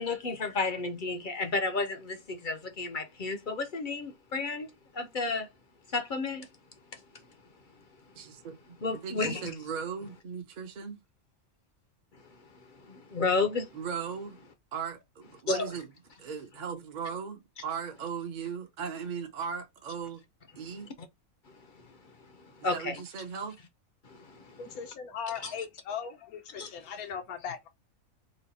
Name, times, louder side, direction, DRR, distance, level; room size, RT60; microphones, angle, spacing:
voice 1, 0.0-4.7 4.9-5.5 5.9-6.5 6.9-7.0 8.8-9.4 12.8-13.7 15.5-15.7 22.4-23.0 24.0-24.6 25.4-25.5 26.6-26.7, left 3 dB, 50° left, 0.6 m, -32 dB
voice 2, 8.1-8.8 9.0-11.0 13.7-14.4 14.7-15.9 16.2-20.2 20.6-20.9 22.7-23.6, right 6 dB, 40° right, 0.7 m, -38 dB
voice 3, 24.6-27.7, left 7 dB, 85° left, 1.2 m, -38 dB
4.2 x 2.2 x 4.0 m
omnidirectional pair, 1.5 m